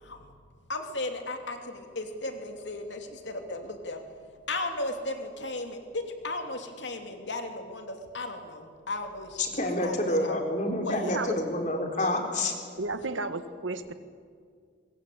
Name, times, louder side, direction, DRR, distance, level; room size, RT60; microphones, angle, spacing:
voice 1, 0.7-4.0 4.5-9.3 9.6-10.6 10.8-11.2, left 2 dB, 65° left, 5 dB, 2.9 m, -35 dB
voice 2, 9.4-12.5, left 1 dB, 40° left, 4 dB, 3.7 m, -28 dB
voice 3, 12.8-13.9, right 3 dB, 85° right, 10 dB, 1.6 m, -32 dB
23.5 x 21.5 x 8.7 m, 2.1 s
head